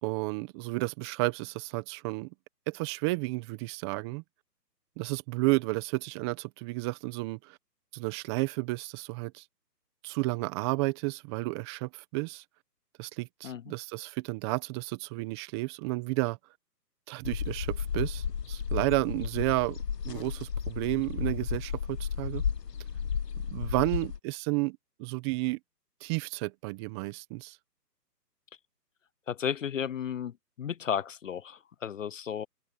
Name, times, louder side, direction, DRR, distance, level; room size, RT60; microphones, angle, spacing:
voice 1, 0.0-2.3 2.7-4.2 5.0-7.6 7.9-9.4 10.0-12.4 13.0-16.4 17.1-19.8 20.0-22.4 23.5-25.6 26.0-27.6, right 23 dB, 15° right, 1.4 m, -32 dB
sound 1, 17.2-24.2, left 7 dB, 70° left, 1.7 m, -33 dB
voice 2, 29.3-30.3 30.6-32.5, left 8 dB, 50° left, 1.0 m, -33 dB
hypercardioid pair, 150°, 50 cm